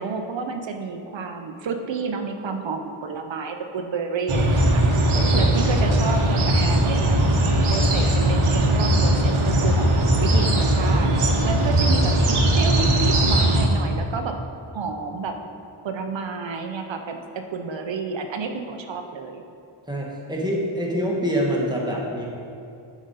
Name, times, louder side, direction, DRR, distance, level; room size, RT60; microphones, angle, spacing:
voice 1, 0.0-4.8 5.3-7.2 7.7-9.9 10.2-11.1 11.4-14.4 14.7-15.4 15.8-19.4, right 4 dB, 65° right, 5 dB, 0.7 m, -30 dB
sound 1, 4.3-13.7, right 1 dB, 80° right, 1.1 m, -19 dB
voice 2, 5.1-5.6 19.9-22.3, equal, 10° right, -3 dB, 1.2 m, -26 dB
11.0 x 5.0 x 4.1 m, 2.6 s
wide cardioid pair, 145°, 49 cm